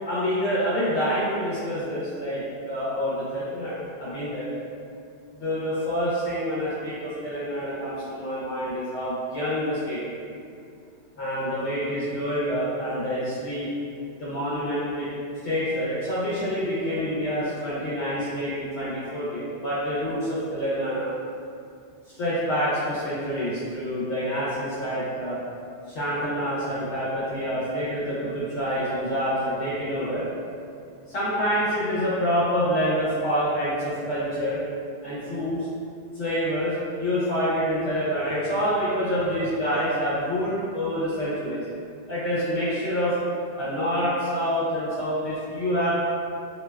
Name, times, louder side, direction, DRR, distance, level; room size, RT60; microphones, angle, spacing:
voice 1, 0.0-4.5 5.4-10.1 11.2-13.7 14.2-15.1 15.4-21.1 22.1-25.4 25.9-30.3 31.1-34.6 35.0-35.7 36.1-41.6 42.1-43.2 43.6-46.0, equal, 80° left, -10 dB, 0.9 m, -27 dB
2.6 x 2.1 x 2.2 m, 2.4 s
omnidirectional pair, 1.2 m